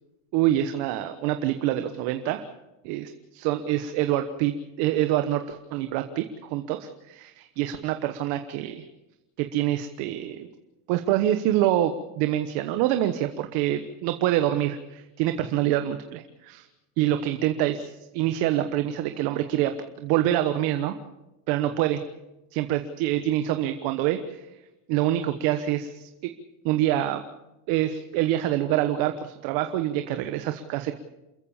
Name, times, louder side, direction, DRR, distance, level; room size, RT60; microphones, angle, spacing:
voice 1, 0.3-2.4 2.8-8.8 9.4-10.5 10.9-16.7 17.0-21.0 21.5-22.0 22.5-24.5 24.9-26.3 26.6-27.2 27.7-30.9, right 12 dB, 75° right, 8 dB, 1.2 m, -26 dB
28.0 x 14.5 x 7.2 m, 1.0 s
cardioid pair, 135°, 37 cm